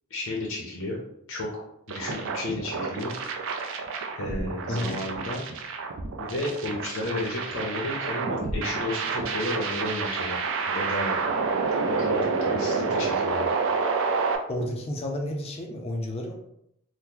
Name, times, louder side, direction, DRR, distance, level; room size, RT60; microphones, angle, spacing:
voice 1, 0.1-1.0 1.3-1.6 1.9-3.1 4.2-5.4 6.2-10.4 10.7-11.2 11.9-13.5, left 1 dB, 65° left, -3 dB, 0.6 m, -32 dB
sound 1, 1.9-14.4, right 4 dB, 60° right, 0.4 m, -29 dB
voice 2, 4.7-5.0 14.5-16.3, left 1 dB, 25° left, 1 dB, 0.4 m, -31 dB
2.9 x 2.1 x 3.6 m, 0.77 s
head